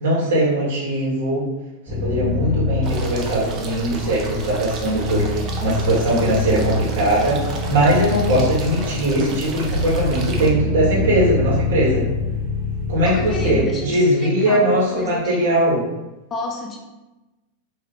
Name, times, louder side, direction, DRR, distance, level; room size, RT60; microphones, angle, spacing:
voice 1, 0.0-1.4 1.9-7.4 7.7-12.0 12.9-15.8, right 1 dB, 60° right, -6 dB, 1.4 m, -20 dB
sound 1, 1.9-13.6, left 2 dB, 5° right, 1.0 m, -26 dB
sound 2, 2.8-10.5, right 3 dB, 35° right, 0.6 m, -34 dB
sound 3, 9.6-13.2 13.7-13.8 14.4-15.2 15.5-15.6, right 1 dB, 85° left, 0.7 m, -31 dB
voice 2, 13.0-15.5 16.3-16.8, left 3 dB, 25° left, 0 dB, 0.6 m, -30 dB
3.2 x 2.7 x 3.8 m, 1.1 s
figure-of-eight pair, 90°, 0 cm